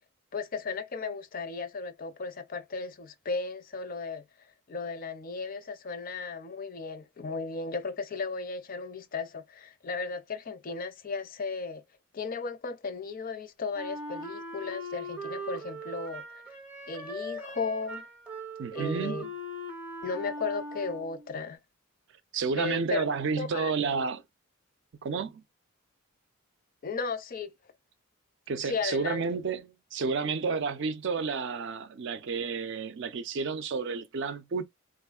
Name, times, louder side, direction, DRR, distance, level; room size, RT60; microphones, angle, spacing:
voice 1, 0.3-11.8 12.1-16.4 16.9-18.1 18.7-19.2 20.0-21.6 22.6-23.0 23.4-23.7 26.8-27.5 28.6-29.2, left 4 dB, 40° left, 0.4 m, -35 dB
Wind instrument woodwind instrument, 13.7-21.3, right 1 dB, 5° right, 0.5 m, -40 dB
voice 2, 18.6-19.3 22.3-24.2 25.0-25.4 28.5-34.6, right 5 dB, 60° right, 0.4 m, -31 dB
3.5 x 2.5 x 2.3 m
head